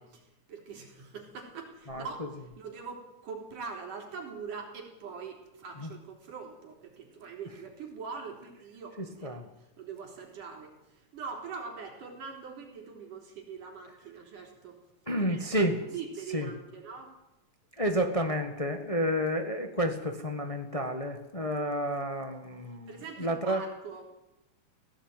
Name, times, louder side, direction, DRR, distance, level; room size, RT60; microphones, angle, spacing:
voice 1, 0.0-2.3 2.6-9.4 9.8-14.8 15.2-17.1 22.9-24.1, right 5 dB, 80° right, 1 dB, 5.3 m, -43 dB
voice 2, 9.0-9.5 15.1-15.8 16.3-16.5 17.8-23.6, equal, 30° left, 5 dB, 0.6 m, -30 dB
17.0 x 17.0 x 9.1 m, 0.93 s
omnidirectional pair, 3.6 m